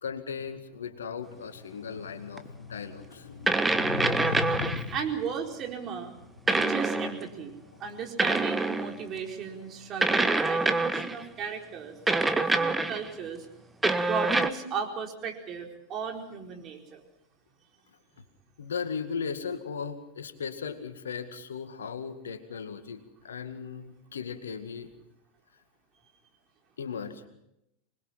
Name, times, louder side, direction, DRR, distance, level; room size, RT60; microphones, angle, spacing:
voice 1, 0.0-5.0 7.7-7.8 18.6-24.9 26.8-27.3, left 6 dB, 75° left, 8 dB, 2.0 m, -36 dB
sound 1, 2.4-2.5 3.5-4.9 6.5-7.3 8.2-9.1 10.0-11.2 12.1-13.1 13.8-14.5, right 2 dB, 10° right, 1.4 m, -26 dB
voice 2, 4.9-6.1 6.5-13.4 14.0-17.0, right 6 dB, 35° right, 2 dB, 4.5 m, -35 dB
26.0 x 21.0 x 5.8 m, 0.82 s
figure-of-eight pair, 85°, 0 cm